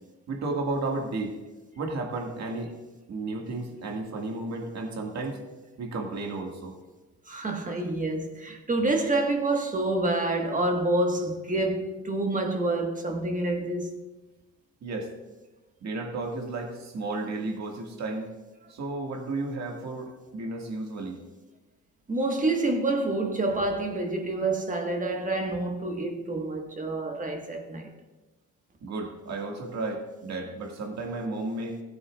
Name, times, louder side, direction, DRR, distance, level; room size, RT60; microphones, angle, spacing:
voice 1, 0.3-1.3 1.8-2.7 3.1-5.4 5.8-6.7 9.0-9.1 14.8-15.1 15.8-18.3 18.7-21.2 28.8-31.8, right 2 dB, 60° right, 2.0 m, -33 dB
voice 2, 7.3-13.9 22.1-27.9, right 2 dB, 25° right, 1.6 m, -27 dB
16.0 x 9.3 x 2.5 m
cardioid pair, 90°, 30 cm